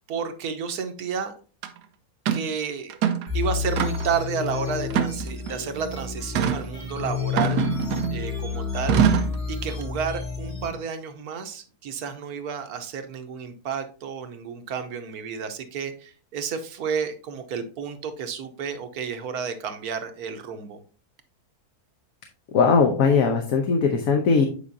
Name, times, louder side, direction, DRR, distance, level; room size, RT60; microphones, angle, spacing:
voice 1, 0.1-1.3 2.3-2.9 3.3-7.6 8.1-9.0 9.5-20.8, right 6 dB, 70° right, 8 dB, 1.3 m, -31 dB
sound 1, 1.6-1.7 2.3-2.5 2.9-3.3 3.8-4.2 4.9-5.6 6.3-6.6 7.4-8.2 8.9-9.4, right 8 dB, 90° right, 1.3 m, -23 dB
sound 2, 3.3-10.7, left 6 dB, 90° left, 3.2 m, -30 dB
voice 2, 22.5-24.5, left 5 dB, 65° left, 3 dB, 1.2 m, -19 dB
8.6 x 5.0 x 2.6 m, 0.38 s
omnidirectional pair, 1.7 m